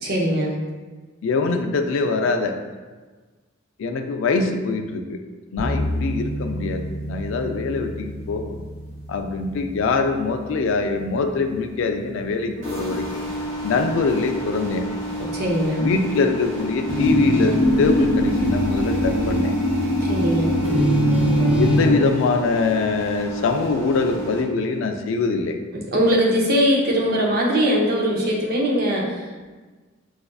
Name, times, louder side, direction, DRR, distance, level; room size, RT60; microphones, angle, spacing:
voice 1, 0.0-0.6 12.5-12.8 15.2-15.8 20.0-20.6 25.7-29.4, equal, 50° right, -3 dB, 0.6 m, -21 dB
voice 2, 1.2-2.5 3.8-5.2 5.5-8.6 9.1-13.2 13.6-14.9 15.8-19.5 21.6-25.6, left 4 dB, 70° left, 5 dB, 0.3 m, -23 dB
sound 1, 5.6-13.7, equal, 15° left, 0.5 m, -33 dB
sound 2, 12.6-24.4, equal, 65° right, 0.9 m, -32 dB
sound 3, 16.9-21.9, equal, 5° right, 1.0 m, -20 dB
4.1 x 2.4 x 2.2 m, 1.3 s
head